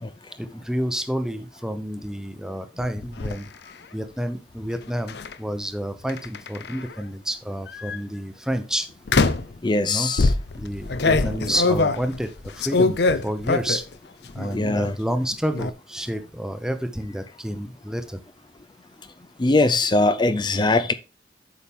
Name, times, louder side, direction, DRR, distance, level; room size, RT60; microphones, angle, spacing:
voice 1, 0.4-3.5 3.9-8.9 9.9-10.1 10.6-12.3 12.6-13.0 13.2-13.8 14.3-18.2, equal, 5° right, 0.7 m, -29 dB
sound 1, 2.8-3.4 5.1-5.3 6.1-6.9 7.7-8.0 9.1-9.6 10.2-13.9 14.3-14.8 15.1-15.7, left 3 dB, 65° left, 0.6 m, -23 dB
voice 2, 9.6-10.3 14.5-14.9 19.4-20.9, left 2 dB, 25° left, 0.4 m, -21 dB
8.5 x 5.9 x 3.5 m
head